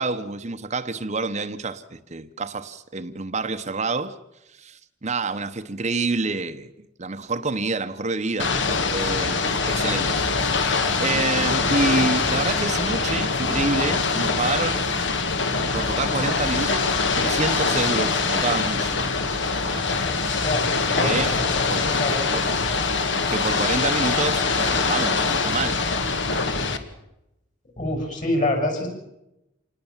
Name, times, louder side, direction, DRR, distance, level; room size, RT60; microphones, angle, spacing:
voice 1, 0.0-4.1 4.5-10.7 11.0-14.8 15.7-19.1 21.0-21.3 21.7-21.9 22.3-22.5 23.3-25.8, right 3 dB, 35° right, 0.9 m, -28 dB
Ocean / Boat Water vehicle, 8.4-26.8, left 4 dB, 65° left, 1.8 m, -23 dB
voice 2, 20.4-22.3 27.8-28.9, left 1 dB, 40° left, 7.0 m, -26 dB
27.0 x 19.5 x 7.3 m
head